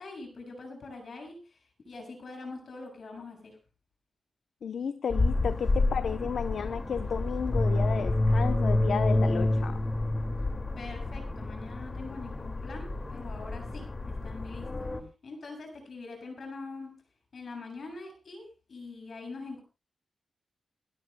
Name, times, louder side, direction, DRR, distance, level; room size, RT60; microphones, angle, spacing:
voice 1, 0.0-1.6 1.8-3.6 10.8-14.9 15.2-16.9 17.3-19.6, left 3 dB, 65° left, 3 dB, 7.1 m, -43 dB
voice 2, 4.6-9.8, left 6 dB, 80° left, 10 dB, 0.7 m, -33 dB
sound 1, 5.1-15.0, left 2 dB, 35° left, 2.3 m, -29 dB
29.5 x 13.0 x 2.3 m, 0.30 s
wide cardioid pair, 90°, 0 cm